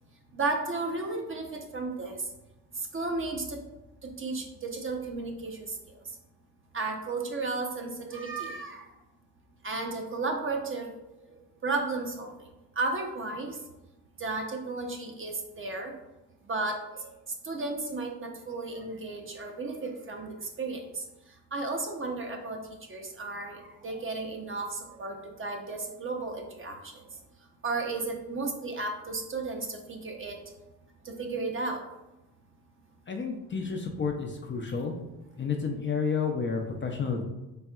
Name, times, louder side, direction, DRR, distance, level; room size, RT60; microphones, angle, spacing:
voice 1, 0.3-2.2 2.9-3.6 4.2-5.7 6.7-8.8 9.6-10.9 11.6-12.3 12.8-13.6 14.2-15.9 16.5-17.1 17.4-21.0 21.5-22.6 22.9-26.9 27.6-30.4 31.0-31.8, right 3 dB, 30° right, 2 dB, 0.8 m, -33 dB
voice 2, 33.1-34.9 35.4-37.2, left 5 dB, 30° left, 2 dB, 0.5 m, -30 dB
4.2 x 3.4 x 2.3 m, 1.0 s
supercardioid pair, 75°, 40 cm